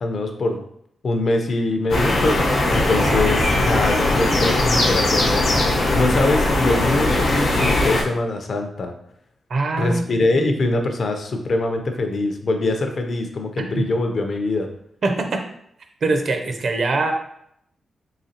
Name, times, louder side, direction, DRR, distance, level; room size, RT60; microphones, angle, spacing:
voice 1, 0.0-0.6 1.0-8.9 9.8-14.7, left 2 dB, 50° left, 5 dB, 0.5 m, -23 dB
sound 1, 1.9-8.0, left 2 dB, 80° left, 0.8 m, -19 dB
voice 2, 3.1-3.4 9.5-10.0 10.3-10.5 13.8-13.9 15.0-15.4 16.0-17.1, right 3 dB, 50° right, 4 dB, 0.5 m, -23 dB
3.9 x 3.2 x 2.7 m, 0.72 s
wide cardioid pair, 130°, 0 cm